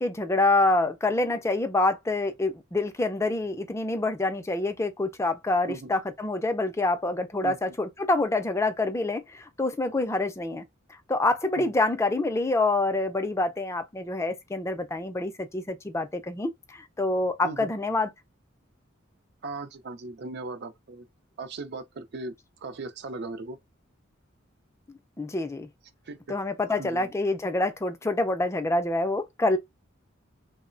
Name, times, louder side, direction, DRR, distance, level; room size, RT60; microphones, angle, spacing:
voice 1, 0.0-10.7 11.1-18.1 24.9-25.7 26.3-29.6, left 2 dB, 15° left, 0.4 m, -26 dB
voice 2, 19.4-21.0 21.4-22.3 22.6-23.6 26.1-26.4 26.8-27.1, right 3 dB, 55° right, 0.4 m, -38 dB
3.0 x 2.0 x 2.4 m
head